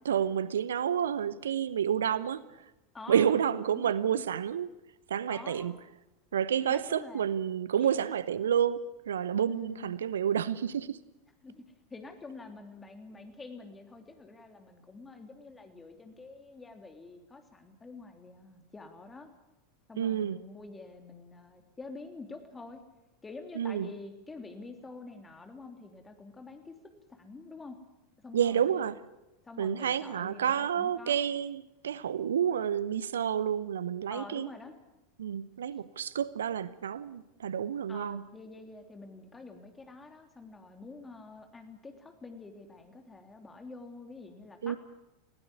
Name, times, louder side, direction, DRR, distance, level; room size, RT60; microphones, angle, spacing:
voice 1, 0.0-2.4 3.1-4.7 5.1-5.7 6.3-8.8 9.1-11.0 20.0-20.4 23.6-23.9 28.3-28.9 29.6-34.5 35.2-38.2 44.6-44.8, right 9 dB, 70° right, 0.7 m, -29 dB
voice 2, 2.9-3.3 3.7-4.2 5.3-5.7 6.7-7.2 7.7-8.1 9.5-9.9 11.4-11.6 11.9-19.3 19.9-22.8 23.2-27.8 28.2-28.9 29.4-31.3 34.1-34.7 37.9-44.8, left 3 dB, 15° left, 3.1 m, -47 dB
20.0 x 16.5 x 9.8 m
figure-of-eight pair, 85°, 0 cm